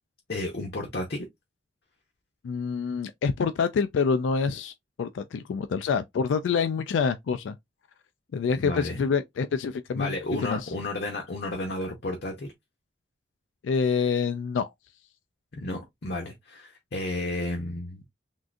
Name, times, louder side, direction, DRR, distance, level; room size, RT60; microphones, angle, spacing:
voice 1, 0.3-1.3 8.6-9.0 9.9-12.5 15.5-18.0, left 2 dB, 60° left, 0.7 m, -32 dB
voice 2, 2.4-4.7 5.0-7.5 8.3-10.1 10.4-10.7 13.6-14.7, left 5 dB, 85° left, 0.3 m, -26 dB
3.6 x 2.5 x 2.4 m
head